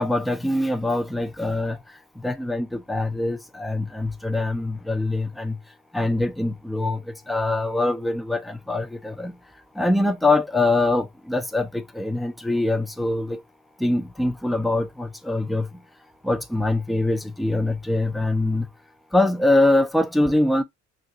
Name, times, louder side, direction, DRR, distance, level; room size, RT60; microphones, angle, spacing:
voice 1, 0.0-1.8 2.2-5.6 5.9-9.3 9.8-13.4 13.8-15.7 16.2-18.7 19.1-20.6, left 2 dB, ahead, 0.4 m, -23 dB
2.6 x 2.4 x 3.8 m
cardioid pair, 95°, 31 cm